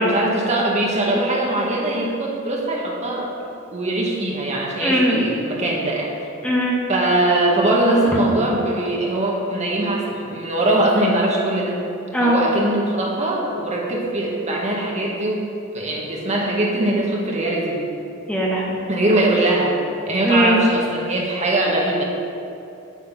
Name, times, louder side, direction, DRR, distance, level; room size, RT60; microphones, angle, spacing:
voice 1, 0.0-3.3 3.7-6.1 6.9-11.8 12.2-15.5 15.7-17.9 18.9-19.8 20.1-22.0, right 1 dB, 30° right, -2 dB, 1.6 m, -21 dB
voice 2, 4.8-5.2 6.4-6.8 12.1-12.4 18.3-18.8 20.2-20.6, equal, 5° left, -4 dB, 1.3 m, -19 dB
9.4 x 8.7 x 5.4 m, 2.6 s
head